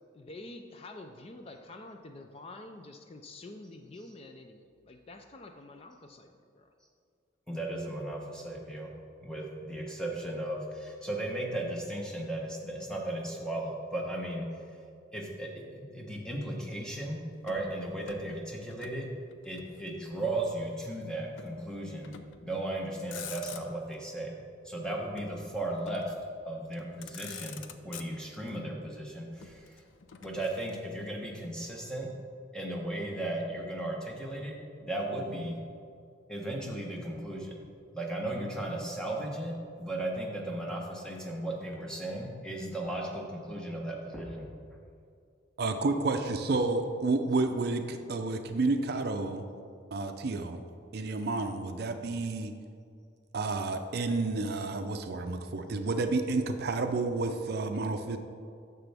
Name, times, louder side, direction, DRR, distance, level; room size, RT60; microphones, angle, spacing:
voice 1, 0.1-6.7 46.6-46.7, left 2 dB, 30° left, 5 dB, 0.4 m, -48 dB
voice 2, 7.5-8.9 9.2-14.5 15.1-17.2 17.4-19.1 19.4-22.1 22.4-24.3 24.6-26.1 26.4-29.7 30.2-32.1 32.5-34.5 34.8-35.6 36.3-37.6 37.9-44.5, right 1 dB, 5° left, -1 dB, 1.1 m, -36 dB
Motor vehicle (road), 17.4-19.0 19.3-20.4 21.4-21.6 22.0-22.5 22.9-24.0 25.2-26.2 26.7-26.8 27.0-28.5 29.4-31.0, left 8 dB, 85° left, 0.5 m, -47 dB
voice 3, 45.6-49.5 49.9-50.6 50.9-52.5 53.3-58.2, right 3 dB, 55° right, 7 dB, 0.5 m, -30 dB
9.7 x 6.9 x 3.4 m, 2.4 s
head